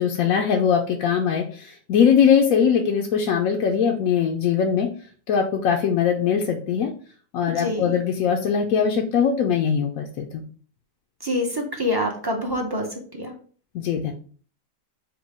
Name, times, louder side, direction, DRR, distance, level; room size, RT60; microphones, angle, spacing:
voice 1, 0.0-4.9 5.3-6.9 7.3-10.4 13.7-14.1, left 7 dB, 85° left, 2 dB, 1.0 m, -21 dB
voice 2, 7.5-7.9 11.2-12.9 13.1-13.3, left 1 dB, 25° right, 1 dB, 0.5 m, -26 dB
5.0 x 2.2 x 4.6 m, 0.44 s
omnidirectional pair, 1.4 m